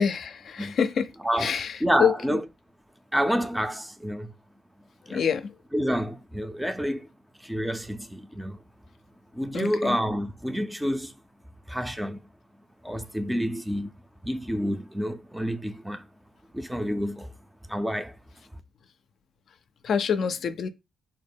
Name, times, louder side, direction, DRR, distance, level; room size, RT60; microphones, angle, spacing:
voice 1, 0.0-1.1 1.4-2.1 5.1-5.5 9.5-10.0 19.8-20.7, left 7 dB, 60° left, 0.4 m, -26 dB
voice 2, 1.2-2.4 3.1-4.3 5.1-5.2 5.7-7.1 7.4-8.6 9.3-11.1 11.7-12.2 12.8-13.9 14.2-16.0 16.5-17.3 17.7-18.1, equal, 5° right, 0.4 m, -28 dB
3.9 x 2.0 x 3.5 m
cardioid pair, 90°, 0 cm